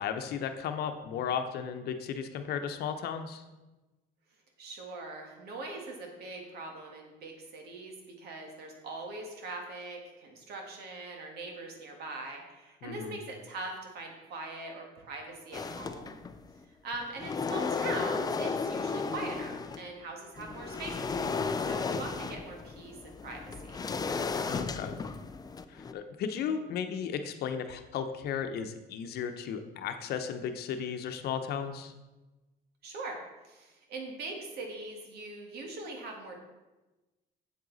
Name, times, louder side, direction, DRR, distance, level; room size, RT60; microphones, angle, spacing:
voice 1, 0.0-3.4 12.8-13.2 24.5-25.0 25.7-31.9, left 7 dB, 70° left, 7 dB, 0.9 m, -35 dB
voice 2, 4.6-16.2 16.7-23.8 32.8-33.2 33.4-36.4, right 2 dB, 70° right, 2 dB, 2.0 m, -42 dB
sound 1, 15.5-16.5 16.9-19.9 20.4-25.9, left 4 dB, 25° left, 0.5 m, -34 dB
8.3 x 7.8 x 4.1 m, 1.1 s
cardioid pair, 110°, 17 cm